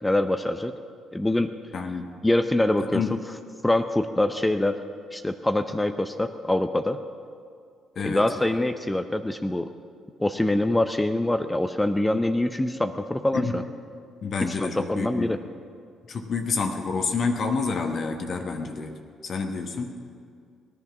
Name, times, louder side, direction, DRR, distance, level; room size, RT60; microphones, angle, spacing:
voice 1, 0.0-0.7 1.1-1.5 2.2-3.0 3.6-4.8 5.1-7.0 8.0-9.7 10.2-13.6 14.4-15.4, left 1 dB, 10° left, 8 dB, 0.7 m, -24 dB
voice 2, 1.7-2.2 2.8-3.1 7.9-8.3 13.3-13.5 14.2-15.3 16.1-19.0 19.2-19.9, left 4 dB, 55° left, 4 dB, 1.3 m, -28 dB
18.0 x 10.5 x 6.0 m, 2.2 s
hypercardioid pair, 50°, 0 cm